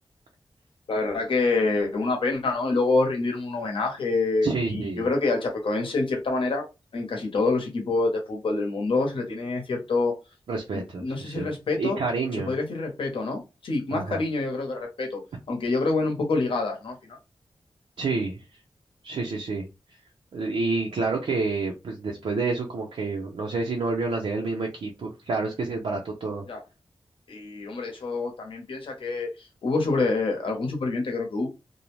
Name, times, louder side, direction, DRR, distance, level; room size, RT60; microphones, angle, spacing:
voice 1, 0.9-6.6 6.9-10.1 10.7-12.0 12.3-15.2 15.5-16.9 26.5-26.6 27.3-29.3 29.6-31.5, left 3 dB, 70° left, 0.8 m, -26 dB
voice 2, 4.4-5.1 10.5-11.5 11.8-12.5 13.9-14.2 18.0-18.4 19.0-19.7 20.3-26.4, right 3 dB, 80° right, 0.5 m, -28 dB
2.6 x 2.0 x 3.0 m
wide cardioid pair, 160°, 9 cm